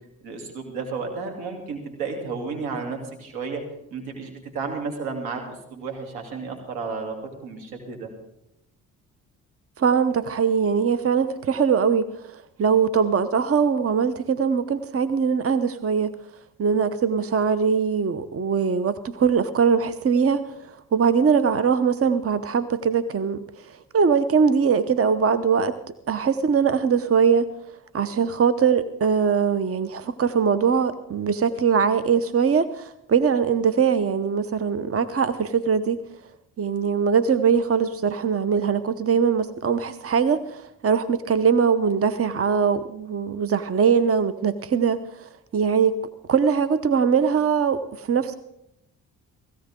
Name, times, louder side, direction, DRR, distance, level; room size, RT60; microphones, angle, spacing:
voice 1, 0.2-3.6 3.9-5.4 5.7-7.2 7.4-8.1, right 4 dB, 85° right, 4 dB, 3.2 m, -32 dB
voice 2, 9.8-12.2 12.6-16.1 16.6-25.7 26.1-27.5 27.9-36.0 36.6-46.0 46.3-48.4, right 6 dB, 40° right, 13 dB, 0.9 m, -21 dB
17.0 x 16.5 x 3.8 m, 0.82 s
supercardioid pair, 55°, 37 cm